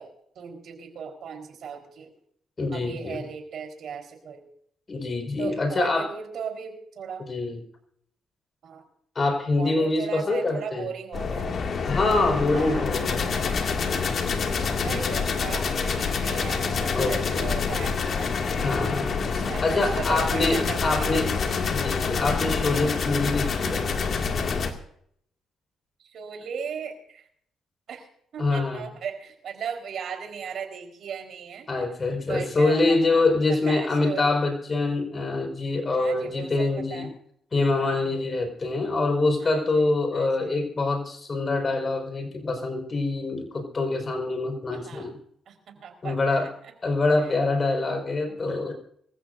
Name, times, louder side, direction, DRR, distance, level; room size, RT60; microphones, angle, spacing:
voice 1, 0.0-2.1 2.7-4.4 5.4-7.3 8.6-8.8 9.6-11.7 12.5-13.6 14.8-18.7 19.2-21.2 26.0-27.3 27.9-28.1 28.3-31.7 32.3-34.3 36.0-37.1 37.8-38.1 39.4-40.7 44.7-45.1 45.5-46.7 47.2-47.4 48.2-48.4, right 7 dB, 65° right, 4 dB, 4.3 m, -37 dB
voice 2, 2.6-3.2 4.9-6.1 7.2-7.6 9.1-10.9 11.9-13.3 14.8-14.9 16.9-17.5 18.6-19.1 19.6-21.3 21.7-23.9 28.4-28.8 31.7-37.1 37.5-45.2 46.0-46.5 46.8-48.7, left 3 dB, 35° left, 4 dB, 5.1 m, -25 dB
sound 1, 11.1-24.7, left 5 dB, 55° left, 2.2 m, -27 dB
25.0 x 15.0 x 2.7 m, 0.67 s
cardioid pair, 90°, 0 cm